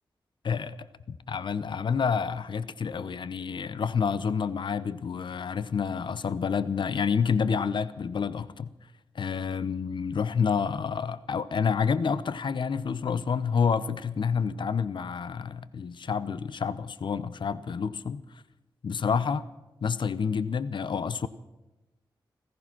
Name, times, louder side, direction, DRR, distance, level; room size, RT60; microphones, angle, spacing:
voice 1, 0.4-8.7 9.1-18.2 18.8-19.5 19.8-21.3, left 6 dB, 65° left, 15 dB, 0.8 m, -28 dB
15.5 x 15.0 x 6.0 m, 1.1 s
cardioid pair, 50°, 9 cm